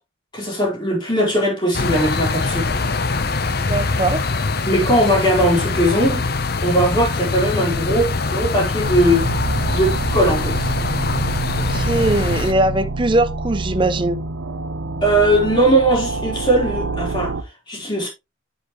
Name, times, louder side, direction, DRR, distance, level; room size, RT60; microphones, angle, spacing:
voice 1, 0.3-2.7 4.7-6.2 6.6-9.3 9.7-10.7 15.0-17.3 17.7-18.1, right 1 dB, 25° left, 4.1 m, -19 dB
sound 1, 1.7-12.5, left 3 dB, 50° left, 0.8 m, -23 dB
voice 2, 3.7-4.3 11.7-14.2, right 2 dB, 25° right, 0.6 m, -20 dB
Intense Dark Noise, 8.8-17.4, right 3 dB, 80° right, 0.9 m, -26 dB
8.2 x 8.2 x 3.1 m
head